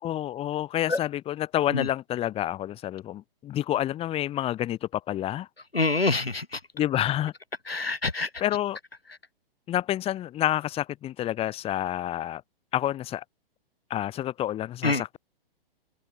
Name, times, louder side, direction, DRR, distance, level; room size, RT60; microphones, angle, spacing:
voice 1, 0.0-5.5 6.7-7.3 8.4-8.8 9.7-12.4 12.7-13.2 13.9-15.2, left 12 dB, 20° left, 2.8 m, -28 dB
voice 2, 5.7-6.6 7.7-8.3 14.8-15.0, left 3 dB, 80° left, 4.8 m, -26 dB
open air
figure-of-eight pair, 120°, 29 cm